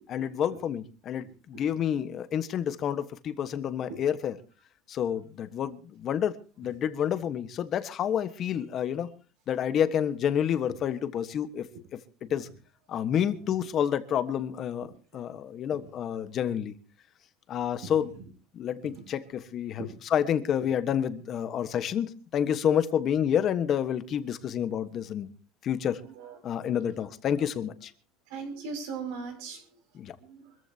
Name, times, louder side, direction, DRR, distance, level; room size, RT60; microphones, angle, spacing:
voice 1, 0.1-4.3 4.9-9.1 9.5-11.7 12.3-12.5 12.9-16.7 17.5-18.1 18.6-19.8 20.1-25.3 25.6-26.0 26.4-27.9 30.0-30.1, left 9 dB, 35° left, 11 dB, 1.4 m, -29 dB
voice 2, 1.2-1.6 3.9-4.0 6.6-6.7 12.2-12.3 13.3-13.6 15.7-15.8 17.8-18.2 18.8-19.0 19.8-19.9 20.6-20.7 26.0-26.5 28.3-29.8 30.2-30.6, right 4 dB, 70° right, 6 dB, 6.6 m, -41 dB
25.0 x 14.5 x 2.9 m, 0.36 s
cardioid pair, 155°, 0 cm